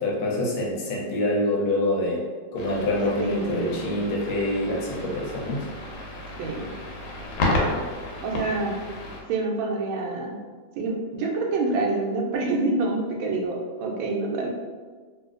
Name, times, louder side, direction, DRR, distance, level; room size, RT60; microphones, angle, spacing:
voice 1, 0.0-2.2 2.5-5.7, left 1 dB, 70° left, -3 dB, 1.2 m, -26 dB
sound 1, 2.6-9.2, left 2 dB, 85° left, 1.4 m, -32 dB
voice 2, 3.2-4.0 6.4-6.7 8.2-8.8 9.3-10.4 10.8-14.5, right 3 dB, 85° right, 0 dB, 1.4 m, -27 dB
3.1 x 2.7 x 2.4 m, 1.5 s
omnidirectional pair, 2.1 m